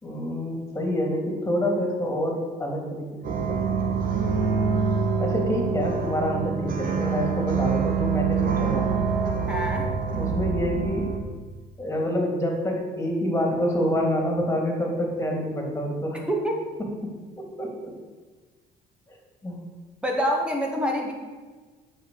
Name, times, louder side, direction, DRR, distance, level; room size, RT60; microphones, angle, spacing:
voice 1, 0.0-3.6 3.9-4.0 5.2-8.9 10.1-11.1 11.8-16.2 16.8-17.9 19.4-19.6, equal, 15° left, 1 dB, 3.3 m, -27 dB
sound 1, 3.2-11.2, right 5 dB, 55° right, 1.9 m, -25 dB
voice 2, 9.5-9.9 16.2-16.5 20.0-21.1, equal, 5° right, 0 dB, 2.3 m, -26 dB
9.5 x 6.5 x 8.0 m, 1.4 s
cardioid pair, 110°, 17 cm